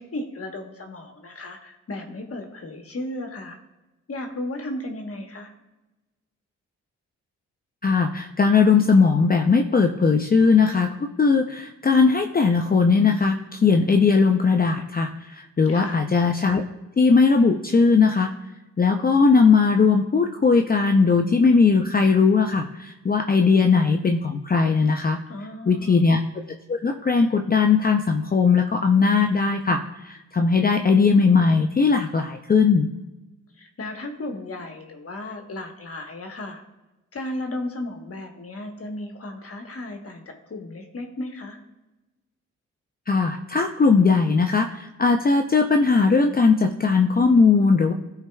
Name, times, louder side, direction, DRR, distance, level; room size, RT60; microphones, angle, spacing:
voice 1, 0.0-3.6 4.1-5.5 15.7-16.0 25.3-26.0 33.6-36.6 37.1-40.2 40.5-41.6, left 1 dB, 45° left, 3 dB, 1.3 m, -34 dB
voice 2, 7.8-16.6 17.0-18.3 18.8-25.2 25.7-26.2 26.7-32.9 43.1-47.9, left 4 dB, 30° left, 4 dB, 0.6 m, -19 dB
14.0 x 4.6 x 2.3 m, 1.1 s
supercardioid pair, 50°, 32 cm